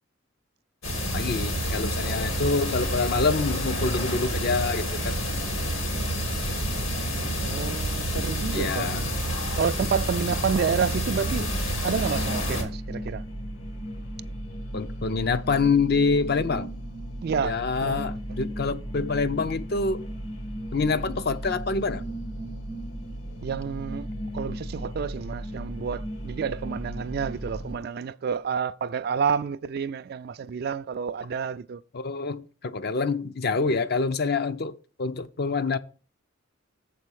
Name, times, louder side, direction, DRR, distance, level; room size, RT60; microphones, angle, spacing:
sound 1, 0.8-12.6, equal, 90° left, 3.1 m, -28 dB
voice 1, 1.1-5.1 8.5-9.0 14.7-16.7 17.4-20.0 20.7-22.0 31.9-35.8, left 4 dB, 50° left, 0.6 m, -26 dB
voice 2, 7.4-9.2 9.6-11.5 11.8-13.2 17.2-18.1 23.4-24.1 24.3-31.8, right 6 dB, 50° right, 0.3 m, -29 dB
sound 2, 11.1-27.7, equal, 70° left, 2.1 m, -36 dB
7.5 x 4.2 x 6.3 m
head